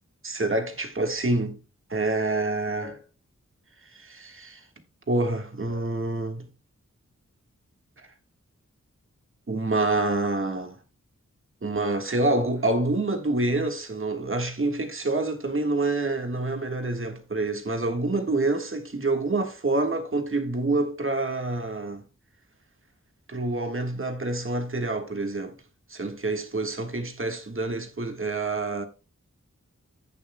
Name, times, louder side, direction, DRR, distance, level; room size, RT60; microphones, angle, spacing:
voice 1, 0.2-1.6 1.9-3.0 3.8-4.7 5.1-6.5 9.5-10.8 11.6-22.0 23.3-25.6 25.9-28.9, right 2 dB, 40° right, 1.5 m, -27 dB
15.5 x 7.1 x 2.2 m
wide cardioid pair, 60°, 31 cm